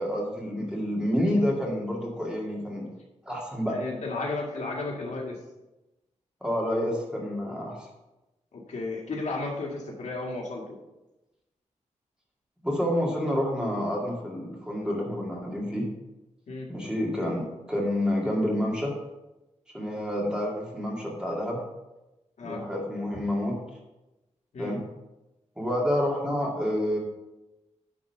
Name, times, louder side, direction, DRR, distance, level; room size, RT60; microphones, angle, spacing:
voice 1, 0.0-2.9 3.2-3.8 6.4-7.9 12.6-15.9 16.7-18.9 19.7-21.6 22.4-23.6 24.6-24.8 25.6-27.0, equal, 5° right, -2 dB, 2.0 m, -28 dB
voice 2, 3.7-5.4 8.5-10.8 16.5-16.7 22.4-22.6 24.5-24.7, left 3 dB, 75° left, -1 dB, 1.9 m, -33 dB
10.0 x 3.8 x 6.7 m, 1.0 s
wide cardioid pair, 155°, 12 cm